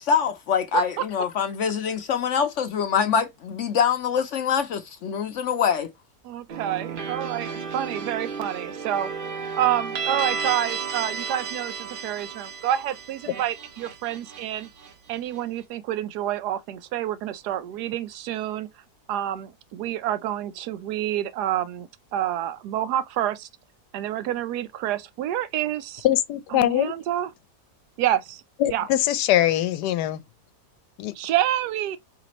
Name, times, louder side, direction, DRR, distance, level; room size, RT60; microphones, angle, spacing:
voice 1, 0.0-5.9, left 6 dB, 65° left, 0.8 m, -24 dB
voice 2, 6.2-9.1 9.5-14.7 15.1-18.7 19.1-23.5 23.9-26.1 26.5-27.3 28.0-28.4 28.7-28.9 31.1-32.0, right 12 dB, 80° right, 1.2 m, -28 dB
sound 1, 6.5-15.4, right 5 dB, 50° right, 0.6 m, -33 dB
voice 3, 26.0-26.9 28.6-30.2 31.0-31.1, left 12 dB, 85° left, 1.2 m, -22 dB
5.0 x 3.3 x 3.0 m
omnidirectional pair, 1.7 m